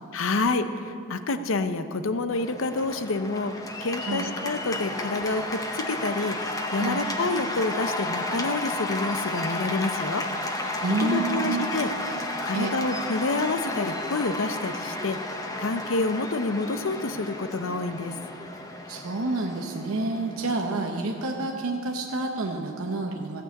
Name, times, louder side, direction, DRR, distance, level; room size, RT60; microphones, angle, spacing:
voice 1, 0.1-10.2 11.0-11.9 12.4-15.2 15.6-18.1, left 3 dB, 60° left, 10 dB, 0.6 m, -28 dB
Cheering / Applause, 2.3-21.6, left 1 dB, 15° left, 0.8 m, -33 dB
voice 2, 10.8-11.7 12.5-12.7 18.9-23.4, right 2 dB, 75° right, 1 dB, 0.9 m, -28 dB
15.0 x 6.2 x 8.2 m, 2.5 s
head